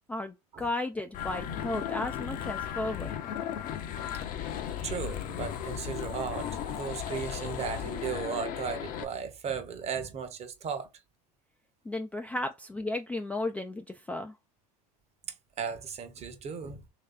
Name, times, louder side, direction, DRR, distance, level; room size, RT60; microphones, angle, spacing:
voice 1, 0.1-3.1 11.9-14.3, left 2 dB, 5° left, 0.3 m, -34 dB
sound 1, 1.1-9.0, left 9 dB, 45° left, 0.7 m, -35 dB
voice 2, 4.8-10.9 15.6-16.8, right 6 dB, 30° right, 0.9 m, -36 dB
3.1 x 2.8 x 3.7 m
hypercardioid pair, 95°, 20 cm